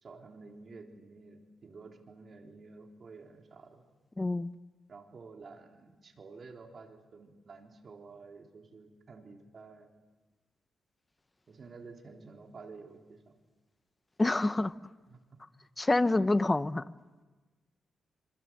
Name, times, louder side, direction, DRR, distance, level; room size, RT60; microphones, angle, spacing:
voice 1, 0.0-3.8 4.9-9.9 11.5-13.3 15.1-15.2 16.2-16.3, right 4 dB, 45° right, 2 dB, 3.9 m, -51 dB
voice 2, 4.2-4.5 14.2-14.7 15.8-16.8, left 2 dB, 20° left, 14 dB, 0.9 m, -27 dB
27.0 x 26.0 x 7.7 m, 1.3 s
cardioid pair, 105°, 0 cm